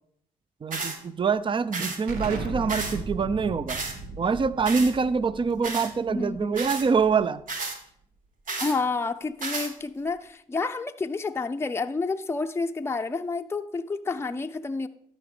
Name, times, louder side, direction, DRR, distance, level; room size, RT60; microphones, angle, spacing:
voice 1, 0.6-3.8 4.2-7.4, right 5 dB, 35° right, 17 dB, 0.5 m, -25 dB
sound 1, 0.7-1.0 1.7-2.0 2.7-3.0 3.7-3.9 4.7-4.9 5.6-5.9 6.5-6.9 7.5-7.8 8.5-8.8 9.4-9.7, right 3 dB, 65° right, 1.6 m, -32 dB
Explosion, 2.1-7.5, right 3 dB, 90° right, 1.1 m, -38 dB
voice 2, 6.1-6.7 8.6-14.9, left 3 dB, 15° left, 6 dB, 0.5 m, -29 dB
12.5 x 5.3 x 4.9 m, 0.67 s
supercardioid pair, 55°, 15 cm